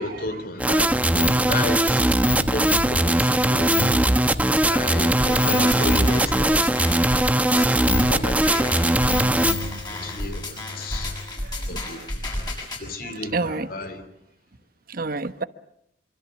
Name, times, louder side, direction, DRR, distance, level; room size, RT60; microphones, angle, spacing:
voice 1, 0.0-3.7 4.7-6.9 7.9-9.0 9.9-11.1 11.7-12.0 12.8-14.1, left 2 dB, 55° left, 3.0 m, -33 dB
sound 1, 0.6-9.5, right 1 dB, 10° right, 0.9 m, -20 dB
sound 2, 0.9-11.4, left 3 dB, 90° left, 7.2 m, -32 dB
sound 3, 5.2-12.8, left 1 dB, 25° left, 6.8 m, -32 dB
voice 2, 11.7-12.1 13.0-13.7 14.9-15.4, right 3 dB, 55° right, 1.0 m, -30 dB
25.5 x 24.5 x 7.5 m
head